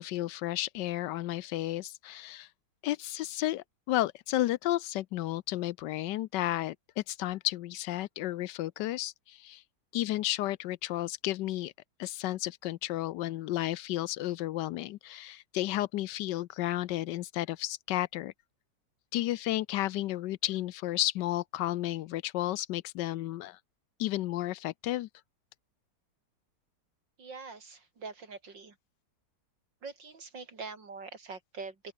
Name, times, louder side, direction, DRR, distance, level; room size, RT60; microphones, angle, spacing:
voice 1, 0.0-2.5 2.8-9.6 9.9-11.7 12.0-18.3 19.1-23.6 24.0-25.1, left 15 dB, 75° left, 1.2 m, -32 dB
voice 2, 27.2-28.8 29.8-31.9, right 4 dB, 75° right, 4.1 m, -44 dB
open air
omnidirectional pair, 2.0 m